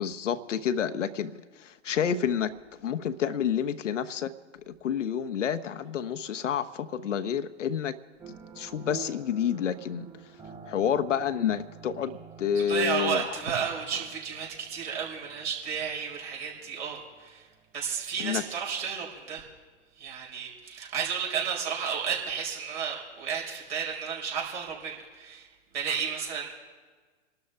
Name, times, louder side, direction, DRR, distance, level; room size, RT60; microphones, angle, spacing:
voice 1, 0.0-2.5 2.8-4.3 4.7-8.0 8.3-10.1 10.6-13.3 18.2-18.4, left 8 dB, 80° left, 10 dB, 1.0 m, -29 dB
sound 1, 8.2-18.9, right 6 dB, 20° right, 2.4 m, -49 dB
voice 2, 12.7-17.5 17.7-19.4 20.0-26.5, right 7 dB, 65° right, -1 dB, 5.2 m, -32 dB
26.5 x 12.5 x 3.4 m, 1.4 s
hypercardioid pair, 110°, 36 cm